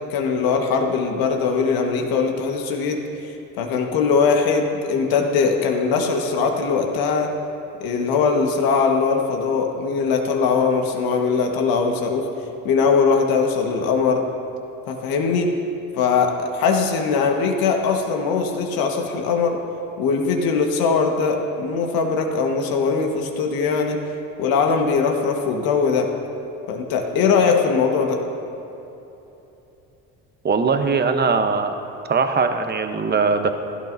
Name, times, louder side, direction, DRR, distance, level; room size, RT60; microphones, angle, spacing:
voice 1, 0.1-7.3 7.8-12.3 12.6-14.2 14.9-15.5 15.9-19.6 20.0-24.0 24.4-26.1 26.7-28.2, left 5 dB, 65° left, 3 dB, 1.5 m, -21 dB
voice 2, 30.4-31.7 32.1-33.6, right 4 dB, 25° right, 7 dB, 0.9 m, -20 dB
15.5 x 12.0 x 2.7 m, 3.0 s
supercardioid pair, 80°, 38 cm